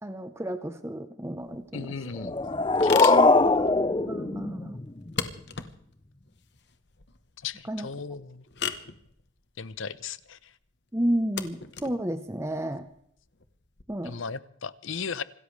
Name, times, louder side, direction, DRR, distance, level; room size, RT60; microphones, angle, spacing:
voice 1, 0.0-1.9 2.2-2.3 4.1-4.8 7.7-7.9 10.9-12.8 13.9-14.2, right 1 dB, 15° right, 0.8 m, -31 dB
sound 1, 1.4-13.8, left 7 dB, 55° left, 1.2 m, -40 dB
voice 2, 1.7-2.4 2.8-3.6 7.4-8.5 9.6-10.5 14.0-15.2, left 5 dB, 75° left, 0.8 m, -36 dB
sound 2, 2.1-5.1, left 3 dB, 25° left, 0.6 m, -22 dB
26.5 x 13.5 x 3.3 m
head